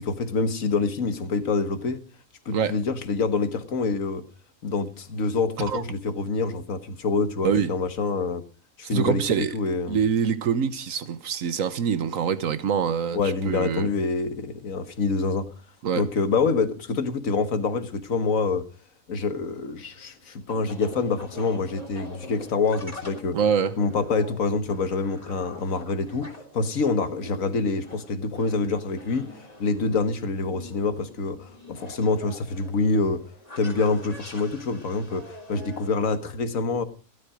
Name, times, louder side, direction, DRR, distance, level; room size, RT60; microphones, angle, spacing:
voice 1, 0.0-2.0 2.4-4.2 4.6-8.4 8.8-10.0 13.1-15.5 16.0-18.7 19.1-23.4 23.8-29.3 29.6-33.2 33.6-36.8, left 4 dB, 85° left, 1.8 m, -26 dB
voice 2, 8.9-9.5 9.9-13.2 13.5-13.9 15.8-16.0 23.3-23.7, right 7 dB, 85° right, 1.4 m, -24 dB
sound 1, 19.3-35.9, left 1 dB, 30° left, 3.2 m, -44 dB
16.0 x 12.5 x 4.9 m
omnidirectional pair, 1.4 m